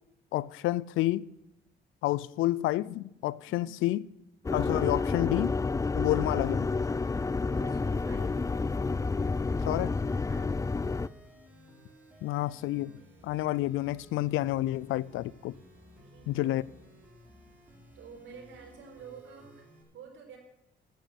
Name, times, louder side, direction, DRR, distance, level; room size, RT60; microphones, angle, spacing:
voice 1, 0.3-1.2 2.0-4.0 4.5-5.5 5.9-6.7 9.6-10.0 12.2-12.9 13.2-15.5 16.3-16.6, left 16 dB, 90° left, 0.5 m, -29 dB
sound 1, 4.4-11.1, left 4 dB, 15° left, 0.4 m, -29 dB
sound 2, 6.1-19.8, equal, 10° right, 5.1 m, -56 dB
voice 2, 7.5-8.4 10.3-10.6 15.9-17.1 17.9-20.4, right 6 dB, 75° right, 4.5 m, -50 dB
10.5 x 9.9 x 9.2 m
cardioid pair, 90°, 20 cm